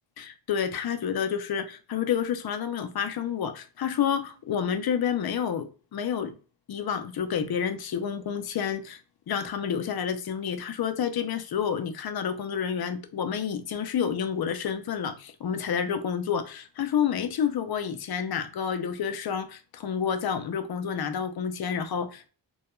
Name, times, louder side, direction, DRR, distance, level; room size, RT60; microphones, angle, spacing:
voice 1, 0.2-6.3 6.7-9.0 9.3-22.3, left 7 dB, 55° left, 0.5 m, -29 dB
2.2 x 2.1 x 2.9 m
wide cardioid pair, 65°, 47 cm